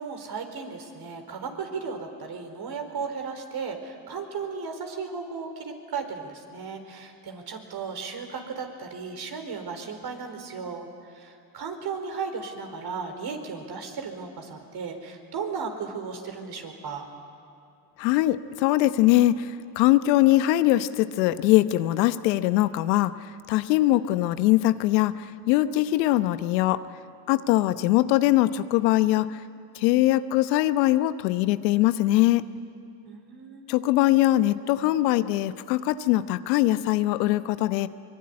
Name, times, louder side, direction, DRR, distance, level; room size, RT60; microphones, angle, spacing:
voice 1, 0.0-10.9 11.2-17.1 33.1-33.7, right 5 dB, 50° right, 5 dB, 4.6 m, -35 dB
voice 2, 18.0-23.1 23.5-26.8 27.3-29.4 29.7-32.4 33.7-37.9, left 15 dB, 85° left, 12 dB, 1.0 m, -22 dB
24.0 x 22.0 x 9.7 m, 2.4 s
supercardioid pair, 75°, 49 cm